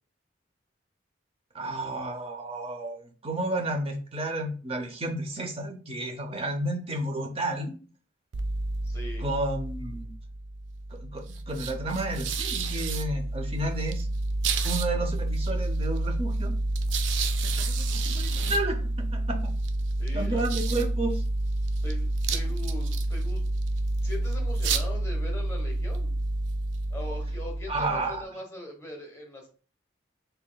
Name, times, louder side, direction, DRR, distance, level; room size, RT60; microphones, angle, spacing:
voice 1, 1.5-7.8 9.2-10.1 11.0-14.1 14.6-16.5 17.5-19.5 20.1-21.2 27.7-28.2, right 2 dB, 30° right, 3 dB, 0.6 m, -32 dB
sound 1, 8.3-28.2, right 2 dB, 75° right, 0.4 m, -29 dB
voice 2, 8.8-9.3 20.0-20.5 21.8-23.4 24.0-26.1 26.9-29.5, left 1 dB, 15° left, 0 dB, 1.0 m, -41 dB
4.8 x 3.3 x 2.2 m, 0.39 s
head